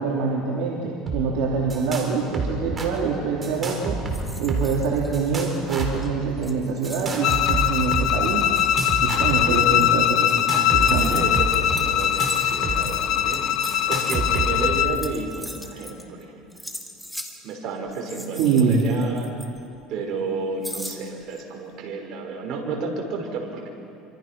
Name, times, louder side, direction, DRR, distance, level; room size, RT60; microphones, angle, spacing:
voice 1, 0.0-4.0 4.4-8.4 9.0-11.2 18.4-18.8, right 5 dB, 75° right, -3 dB, 3.0 m, -25 dB
sound 1, 1.1-1.2 1.5-2.1 2.3-2.9 3.4-4.8 5.1-6.0 6.8-8.1 8.6-9.6 10.3-12.8 13.0-13.1 13.7-14.8, right 3 dB, 25° right, 4.2 m, -28 dB
sound 2, 4.1-5.7 6.0-6.1 6.4-16.2 16.5-17.4 17.9-19.8 20.6-21.4, equal, ahead, 2.4 m, -40 dB
Bowed string instrument, 7.2-15.0, left 11 dB, 55° left, 0.9 m, -22 dB
voice 2, 11.0-16.5 17.4-19.3 19.9-23.7, right 4 dB, 55° right, 1 dB, 5.7 m, -31 dB
27.0 x 26.0 x 6.1 m, 2.6 s
cardioid pair, 125°, 0 cm